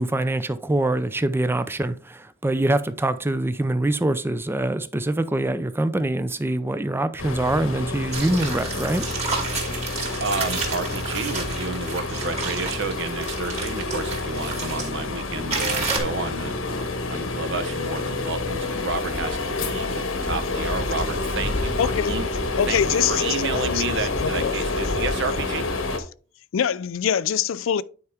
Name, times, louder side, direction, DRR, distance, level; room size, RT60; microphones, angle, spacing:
voice 1, 0.0-9.0, right 1 dB, 10° right, 0.5 m, -24 dB
sound 1, 7.2-26.0, left 2 dB, 90° left, 1.4 m, -28 dB
sound 2, 8.1-14.9 15.5-16.0, right 4 dB, 35° right, 2.4 m, -31 dB
voice 2, 10.1-22.2 22.7-25.7, right 4 dB, 65° right, 1.0 m, -31 dB
voice 3, 21.8-22.1 22.6-23.8 24.2-24.5 26.5-27.8, left 8 dB, 70° left, 0.4 m, -24 dB
9.4 x 4.8 x 3.4 m
head